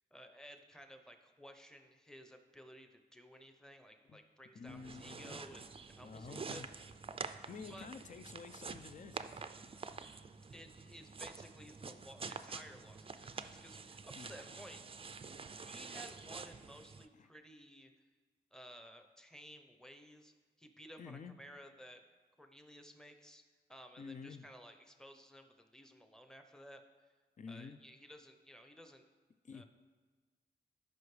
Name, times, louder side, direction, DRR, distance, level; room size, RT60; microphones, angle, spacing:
voice 1, 0.1-5.6 5.9-6.6 7.7-7.9 10.5-14.8 15.5-17.9 18.5-20.3 20.6-22.0 22.4-23.4 23.7-26.8 27.5-29.0 29.5-29.7, equal, 5° left, 6 dB, 0.8 m, -55 dB
voice 2, 4.5-5.4 6.0-6.7 7.5-9.5 14.2-14.4 17.1-17.3 21.0-21.4 24.0-24.5 27.4-27.8 29.4-29.6, left 5 dB, 45° left, 12 dB, 0.5 m, -50 dB
sound 1, 4.7-17.1, right 4 dB, 30° right, 0.4 m, -48 dB
13.0 x 5.3 x 3.3 m, 1.4 s
cardioid pair, 65°, 18 cm